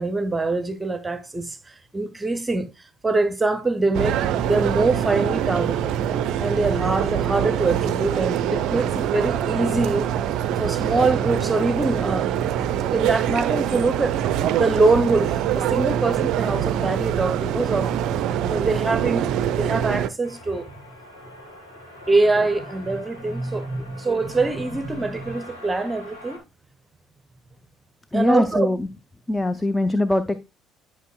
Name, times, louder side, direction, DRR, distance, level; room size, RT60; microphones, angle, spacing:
voice 1, 0.0-4.2 4.5-5.9 6.4-10.1 10.6-14.3 14.6-18.0 18.5-20.8 22.1-26.4 28.1-28.7, right 3 dB, 20° right, 0.8 m, -24 dB
sound 1, 3.9-20.1, right 10 dB, 60° right, 0.4 m, -24 dB
sound 2, 20.2-26.4, left 1 dB, 85° left, 1.9 m, -43 dB
voice 2, 28.1-28.9 29.3-30.4, left 1 dB, 10° left, 0.5 m, -21 dB
11.0 x 5.1 x 2.4 m
figure-of-eight pair, 55°, 0 cm